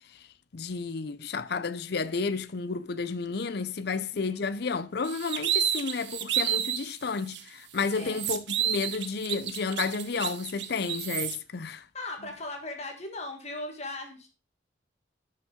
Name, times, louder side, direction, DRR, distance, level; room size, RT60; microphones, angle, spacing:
voice 1, 0.5-11.9, left 4 dB, 55° left, 0.5 m, -31 dB
voice 2, 3.9-4.5 7.9-8.2 11.9-14.3, left 2 dB, 35° left, 1.4 m, -38 dB
sound 1, 5.0-6.9 7.3-7.4 7.8-11.4, right 11 dB, 65° right, 0.8 m, -30 dB
11.0 x 5.4 x 3.7 m
head